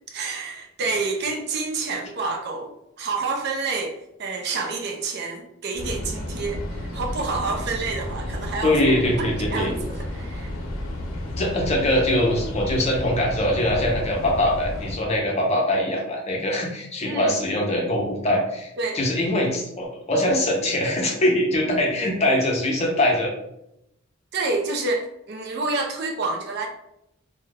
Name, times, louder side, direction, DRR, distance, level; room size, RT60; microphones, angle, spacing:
voice 1, 0.1-8.8 9.2-10.5 17.0-17.3 18.8-19.0 24.3-26.7, right 3 dB, 55° right, 2 dB, 0.4 m, -28 dB
sound 1, 5.8-14.9, left 1 dB, 85° left, 0.6 m, -32 dB
voice 2, 8.6-9.7 11.4-18.7 18.9-23.3, left 1 dB, 30° left, -1 dB, 0.6 m, -22 dB
2.3 x 2.1 x 3.2 m, 0.83 s
head